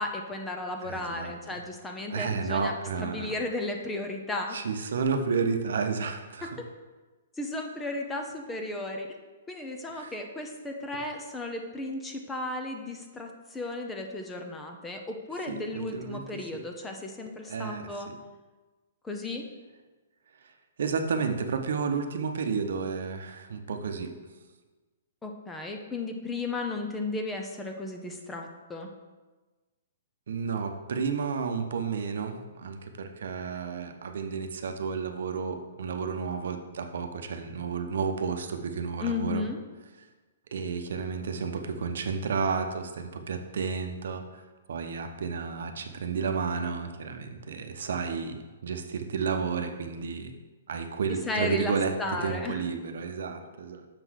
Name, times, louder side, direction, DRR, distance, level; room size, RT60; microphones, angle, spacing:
voice 1, 0.0-2.7 3.0-4.6 7.4-9.1 9.5-18.1 19.0-19.5 25.2-28.9 39.0-39.6 51.3-52.6, left 2 dB, 10° left, 3 dB, 0.6 m, -34 dB
voice 2, 0.8-1.3 2.1-3.3 4.5-6.6 9.9-10.1 15.5-16.6 17.5-17.9 20.8-24.1 30.3-39.5 40.5-44.4 44.7-50.3 50.7-53.9, right 5 dB, 70° right, 6 dB, 0.9 m, -31 dB
6.7 x 4.0 x 6.3 m, 1.2 s
hypercardioid pair, 160°, 0 cm